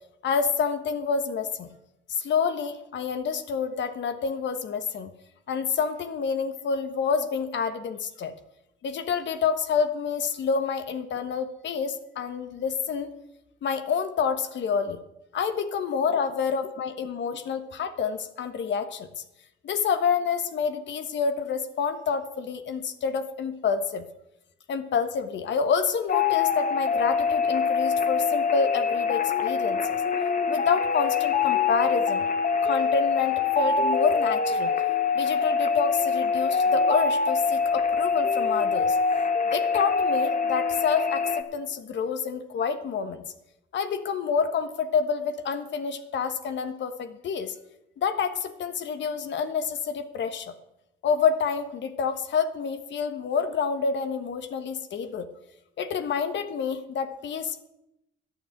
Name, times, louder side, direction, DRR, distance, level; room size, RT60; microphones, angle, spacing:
voice 1, 0.2-1.7 2.1-5.1 5.5-8.3 8.8-13.1 13.6-15.0 15.3-19.2 19.6-24.0 24.7-30.0 30.5-32.3 32.6-34.8 35.1-39.0 39.5-43.2 43.7-47.5 48.0-50.5 51.0-55.3 55.8-57.6, left 6 dB, 65° left, 9 dB, 1.3 m, -28 dB
sound 1, 26.1-41.4, left 5 dB, 40° left, 1.1 m, -24 dB
11.5 x 6.6 x 9.0 m, 0.88 s
cardioid pair, 90°, 20 cm